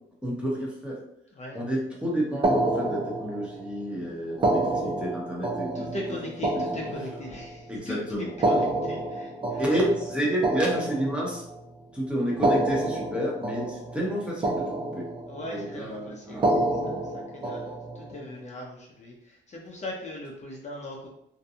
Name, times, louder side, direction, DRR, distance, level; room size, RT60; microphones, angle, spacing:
voice 1, 0.2-1.0 1.5-6.3 6.5-6.8 7.7-8.3 9.6-11.4 11.9-15.1 15.5-16.7, right 1 dB, 5° right, -4 dB, 0.8 m, -30 dB
sound 1, 2.4-3.7 4.3-7.6 8.3-11.6 12.3-14.2 14.4-15.5 16.3-18.1, right 1 dB, 25° right, 0.5 m, -28 dB
voice 2, 5.7-8.0 8.4-9.6 15.3-21.1, left 1 dB, 35° left, -2 dB, 0.6 m, -39 dB
2.6 x 2.2 x 2.7 m, 0.75 s
cardioid pair, 90°, 20 cm